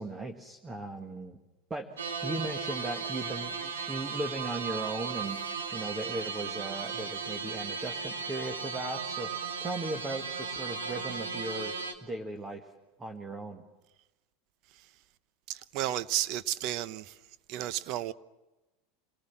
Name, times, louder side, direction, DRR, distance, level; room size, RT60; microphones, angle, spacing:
voice 1, 0.0-1.4 1.7-5.4 5.7-11.7 12.0-12.7 13.0-13.6, right 2 dB, 20° right, 1.7 m, -37 dB
sound 1, 2.0-11.9, right 5 dB, 90° right, 1.8 m, -36 dB
voice 2, 15.5-17.1 17.5-18.1, right 13 dB, 55° right, 0.8 m, -32 dB
27.5 x 18.5 x 7.3 m
hypercardioid pair, 90°, 0 cm